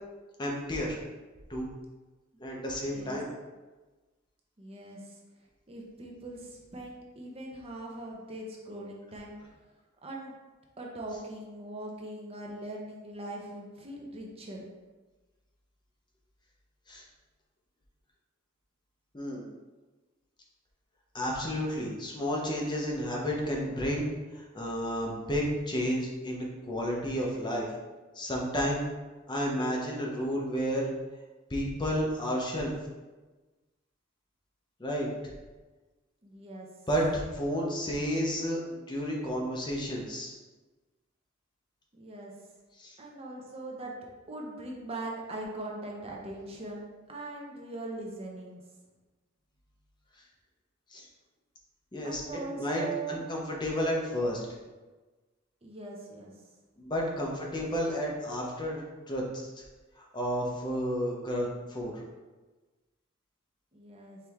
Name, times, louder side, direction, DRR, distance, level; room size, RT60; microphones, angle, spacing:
voice 1, 0.4-1.0 1.5-1.7 2.4-3.3 16.9-17.0 19.1-19.5 21.1-27.7 28.1-28.8 29.3-30.9 31.5-32.7 34.8-35.1 36.9-40.3 42.8-42.9 50.9-51.1 51.9-52.2 52.5-54.4 56.8-59.5 60.0-61.9, equal, 20° left, -2 dB, 0.8 m, -31 dB
voice 2, 2.8-3.2 4.6-5.2 5.7-9.3 10.0-10.3 10.8-14.6 36.2-36.7 41.9-42.3 43.0-43.9 44.3-46.8 47.1-48.6 52.0-53.2 55.6-56.3 63.7-64.2, right 2 dB, 30° right, -2 dB, 0.6 m, -41 dB
4.6 x 3.3 x 3.5 m, 1.2 s
head